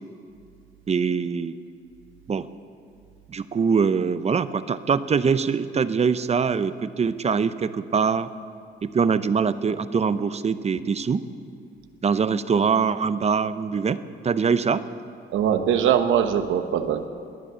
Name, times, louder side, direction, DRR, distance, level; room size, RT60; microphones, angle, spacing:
voice 1, 0.9-1.6 2.3-2.5 3.3-8.3 8.8-11.2 12.0-14.8, right 6 dB, 35° right, 14 dB, 0.7 m, -23 dB
voice 2, 15.3-17.1, right 9 dB, 80° right, 8 dB, 1.1 m, -21 dB
21.0 x 9.2 x 6.9 m, 2.5 s
cardioid pair, 90°, 20 cm